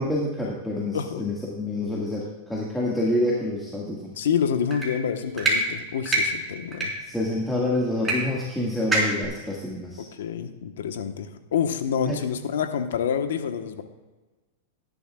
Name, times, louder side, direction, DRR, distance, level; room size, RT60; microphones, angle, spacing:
voice 1, 0.0-4.2 7.0-10.0 12.0-12.2, left 1 dB, 5° left, -6 dB, 1.9 m, -27 dB
voice 2, 4.2-6.9 10.2-13.8, left 7 dB, 85° left, 7 dB, 1.2 m, -27 dB
sound 1, 4.7-4.9 5.4-5.6 6.0-6.2 6.7-6.9 8.0-8.1 8.4-8.5 8.9-9.2, right 3 dB, 15° right, 4.2 m, -23 dB
17.5 x 11.5 x 2.4 m, 1.2 s
hypercardioid pair, 130°, 0 cm